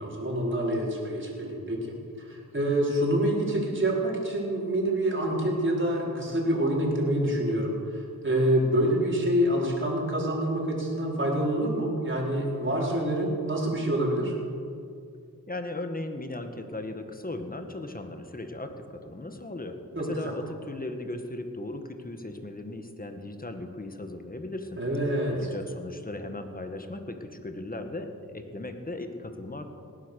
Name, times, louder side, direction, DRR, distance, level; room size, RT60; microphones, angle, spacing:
voice 1, 0.0-14.3 19.9-20.3 24.8-25.4, right 1 dB, 35° right, -3 dB, 4.8 m, -27 dB
voice 2, 15.5-24.8 25.3-29.7, left 2 dB, 25° left, 6 dB, 1.8 m, -37 dB
18.5 x 10.5 x 6.6 m, 2.3 s
cardioid pair, 55°, 34 cm